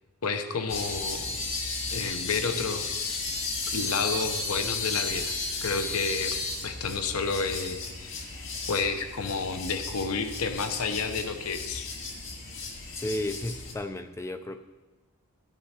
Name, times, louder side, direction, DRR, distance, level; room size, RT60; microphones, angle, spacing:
voice 1, 0.2-1.4 1.9-2.8 3.7-5.4 5.6-6.4 6.6-8.3 8.7-11.9, left 4 dB, 75° left, 8 dB, 0.8 m, -30 dB
sound 1, 0.7-13.7, left 3 dB, 55° left, 2.1 m, -34 dB
voice 2, 13.0-14.6, left 1 dB, 10° left, 9 dB, 0.3 m, -33 dB
12.5 x 10.0 x 4.3 m, 1.2 s
head